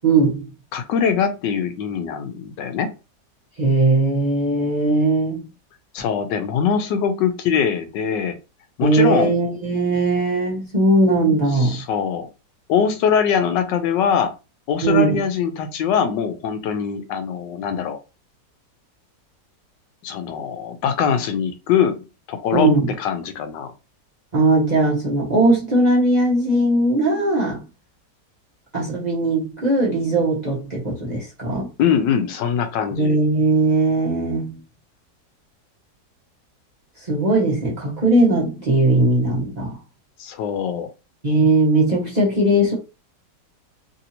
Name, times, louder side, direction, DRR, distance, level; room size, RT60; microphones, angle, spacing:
voice 1, 0.0-0.5 3.6-5.5 8.8-11.8 14.8-15.2 22.5-22.9 24.3-27.6 28.7-31.7 32.9-34.6 37.1-39.8 41.2-42.7, right 2 dB, 30° right, 0.9 m, -19 dB
voice 2, 0.7-2.9 5.9-8.4 8.8-9.3 11.5-12.3 12.7-14.3 14.7-18.0 20.0-22.0 22.3-22.7 23.0-23.7 31.8-33.2 40.2-40.9, left 7 dB, 85° left, 1.3 m, -22 dB
3.2 x 2.7 x 2.8 m
omnidirectional pair, 1.9 m